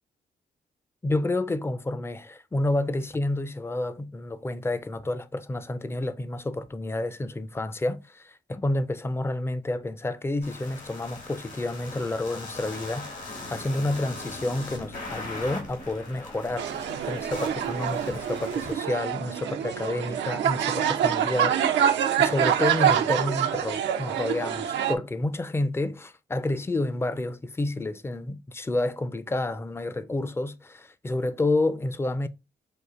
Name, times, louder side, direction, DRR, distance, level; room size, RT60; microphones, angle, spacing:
voice 1, 1.0-21.6 22.2-32.3, left 2 dB, 15° left, 0.4 m, -29 dB
sound 1, 10.4-18.7, left 2 dB, 80° left, 2.6 m, -40 dB
sound 2, 16.6-24.9, right 9 dB, 80° right, 0.5 m, -26 dB
6.3 x 2.5 x 2.4 m
supercardioid pair, 60°, 18 cm